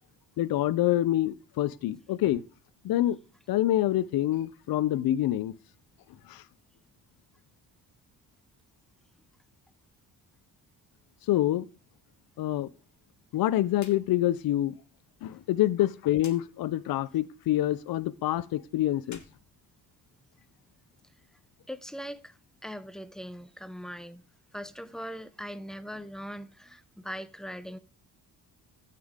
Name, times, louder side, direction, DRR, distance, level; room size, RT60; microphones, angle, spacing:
voice 1, 0.4-2.4 2.8-3.2 3.5-5.5 6.3-6.4 11.3-11.7 12.4-12.7 13.3-14.8 15.2-19.2, left 13 dB, 75° left, 0.6 m, -26 dB
sound 1, 13.7-14.0 14.3-14.4 16.2-16.4 19.0-20.3, left 6 dB, 50° left, 1.7 m, -50 dB
voice 2, 21.7-22.3 22.6-24.2 24.5-27.8, equal, ahead, 0.6 m, -40 dB
13.0 x 8.4 x 3.6 m
cardioid pair, 120°, 36 cm